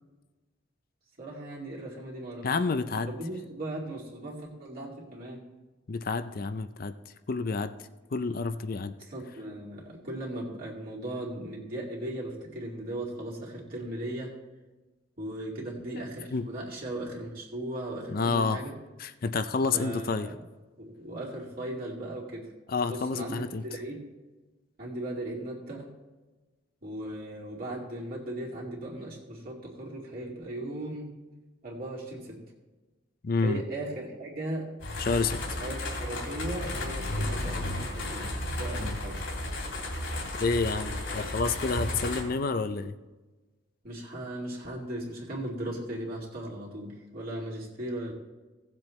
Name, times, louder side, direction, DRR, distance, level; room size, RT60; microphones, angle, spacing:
voice 1, 1.2-2.5 3.1-5.4 9.0-14.3 15.2-18.7 19.7-20.4 20.8-22.5 22.8-24.1 24.8-25.9 26.8-31.1 31.6-32.4 33.4-34.7 35.5-38.3 38.6-39.2 43.8-48.1, right 1 dB, 45° right, -4 dB, 2.5 m, -37 dB
voice 2, 2.4-3.1 5.9-6.9 7.3-7.7 8.1-8.9 16.3-16.5 18.1-18.6 19.0-20.3 22.7-23.6 33.2-33.6 35.0-35.6 38.8-39.0 40.4-42.9, left 4 dB, 45° left, 10 dB, 0.5 m, -29 dB
sound 1, 34.8-42.2, left 1 dB, 80° left, 2.9 m, -33 dB
17.0 x 7.5 x 3.2 m, 1.2 s
head